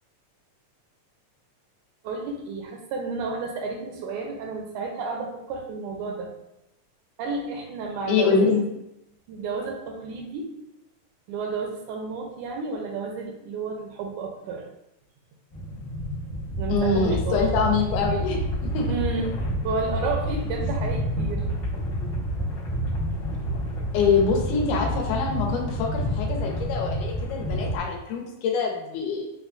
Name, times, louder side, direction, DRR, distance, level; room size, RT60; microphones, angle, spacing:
voice 1, 2.0-6.3 7.2-8.6 9.3-10.5 11.3-14.6 16.6-17.5 18.9-19.4 19.6-21.4, right 4 dB, 80° right, 2 dB, 2.0 m, -31 dB
voice 2, 8.1-8.6 16.7-18.4 18.7-18.8 20.3-20.4 23.9-29.3, left 5 dB, 80° left, 0 dB, 2.1 m, -24 dB
sound 1, 15.5-27.8, equal, 65° left, 1.1 m, -28 dB
5.6 x 2.2 x 2.4 m, 0.85 s
omnidirectional pair, 3.6 m